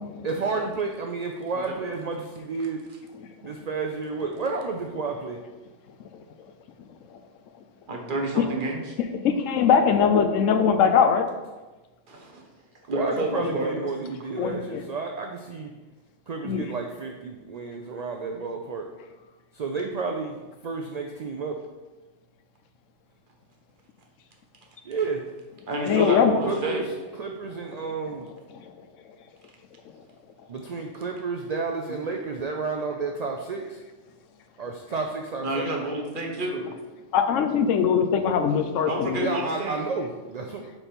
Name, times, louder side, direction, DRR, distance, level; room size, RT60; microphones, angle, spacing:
voice 1, 0.2-2.8 3.4-5.4 12.8-15.7 16.3-18.9 19.5-20.4 20.6-21.6 24.8-25.3 26.4-26.9 27.2-28.3 30.5-33.8 34.6-35.7 39.2-40.7, right 4 dB, 65° right, 2 dB, 0.4 m, -31 dB
voice 2, 7.9-8.9 12.1-12.4 12.9-13.9 14.4-14.5 25.7-26.8 35.4-36.7 38.9-39.7, right 1 dB, 45° right, 1 dB, 1.0 m, -29 dB
voice 3, 9.2-11.3 14.4-14.8 16.4-16.6 25.9-26.3 37.1-39.3, left 7 dB, 85° left, 7 dB, 1.0 m, -21 dB
5.1 x 4.4 x 4.3 m, 1.2 s
omnidirectional pair, 1.3 m